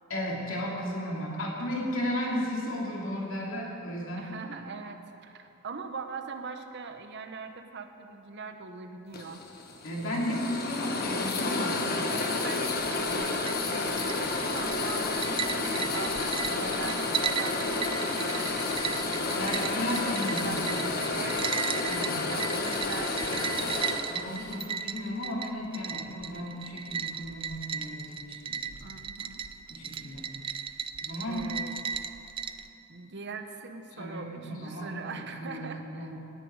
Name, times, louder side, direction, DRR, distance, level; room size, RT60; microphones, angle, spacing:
voice 1, 0.1-4.3 9.8-11.8 19.4-20.5 20.8-21.2 21.9-22.4 23.2-23.3 24.1-28.6 29.7-30.3 31.0-31.4 34.0-36.3, equal, 70° left, -3 dB, 2.8 m, -34 dB
voice 2, 4.1-9.5 12.1-19.9 20.4-21.5 21.8-23.8 28.8-29.5 31.2-31.7 32.9-36.1, right 4 dB, 60° right, 7 dB, 0.9 m, -41 dB
sound 1, 9.1-24.7, left 3 dB, 50° left, 1.3 m, -31 dB
Ice cubes in a cocktail glass or pitcher, 12.8-32.7, right 7 dB, 25° right, 0.4 m, -36 dB
17.5 x 10.0 x 4.8 m, 2.9 s
head